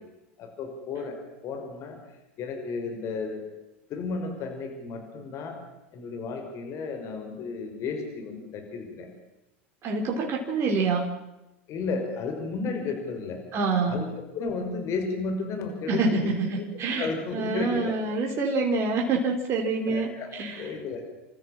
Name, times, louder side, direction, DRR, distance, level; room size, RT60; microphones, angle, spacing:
voice 1, 0.4-1.2 1.4-2.0 2.4-3.4 3.9-5.6 5.9-9.1 11.7-13.4 13.9-14.0 14.3-16.7 17.0-17.9 18.2-18.4 19.8-21.0, left 4 dB, 45° left, 4 dB, 5.7 m, -33 dB
voice 2, 9.8-11.1 13.5-14.0 15.9-20.6, right 3 dB, 40° right, 2 dB, 3.3 m, -26 dB
28.0 x 14.0 x 7.4 m, 0.98 s
hypercardioid pair, 90°, 7 cm